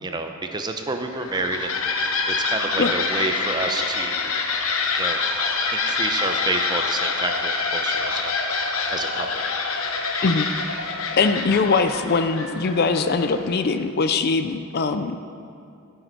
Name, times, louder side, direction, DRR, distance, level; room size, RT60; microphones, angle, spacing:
voice 1, 0.0-4.3 5.0-5.2 5.7-8.3 8.9-9.4, right 3 dB, 20° right, 5 dB, 0.6 m, -29 dB
sound 1, 1.0-13.6, left 4 dB, 85° left, 0.9 m, -26 dB
voice 2, 11.1-15.2, left 4 dB, 50° left, 9 dB, 0.4 m, -21 dB
15.0 x 6.6 x 4.6 m, 2.6 s
head